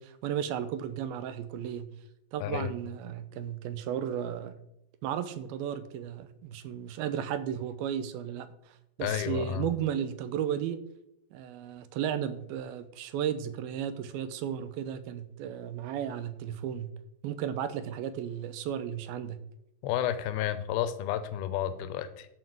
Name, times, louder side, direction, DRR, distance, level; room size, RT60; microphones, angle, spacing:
voice 1, 0.0-1.9 2.3-4.5 5.0-10.8 11.3-16.9 17.2-19.4, right 9 dB, 85° right, 12 dB, 2.7 m, -34 dB
voice 2, 9.0-9.7 19.8-22.3, left 11 dB, 90° left, 12 dB, 2.7 m, -31 dB
11.5 x 4.7 x 7.8 m, 0.81 s
omnidirectional pair, 4.2 m